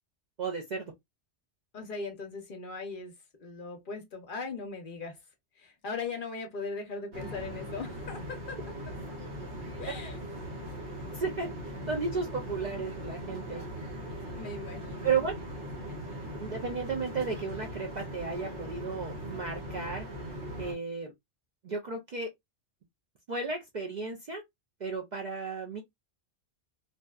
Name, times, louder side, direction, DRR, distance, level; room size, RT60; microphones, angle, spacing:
voice 1, 0.4-0.9 11.1-13.6 15.0-15.4 16.4-20.1 20.6-21.1 21.6-22.3 23.3-24.4 24.8-25.8, right 4 dB, 55° right, 0.5 m, -34 dB
voice 2, 1.7-5.2 5.6-9.0 9.8-10.2 14.4-15.2, left 4 dB, 55° left, 0.7 m, -39 dB
sound 1, 7.1-20.7, equal, 75° right, 1.3 m, -40 dB
2.6 x 2.1 x 2.2 m
omnidirectional pair, 1.2 m